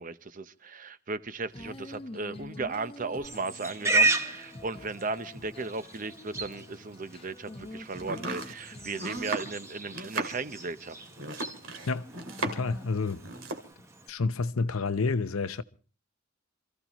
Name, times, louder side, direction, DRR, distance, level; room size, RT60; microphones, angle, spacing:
voice 1, 0.0-10.9, right 3 dB, 40° right, 0.8 m, -36 dB
Female singing, 1.5-9.2, left 2 dB, 25° left, 1.0 m, -46 dB
Livestock farm animals working animals, 3.2-14.1, right 3 dB, 15° right, 0.9 m, -34 dB
Domestic sounds home sounds, 8.0-12.8 13.1-13.7, right 2 dB, 70° right, 2.3 m, -36 dB
voice 2, 12.4-13.2 14.1-15.6, left 4 dB, 90° left, 0.8 m, -29 dB
27.5 x 15.0 x 3.0 m
head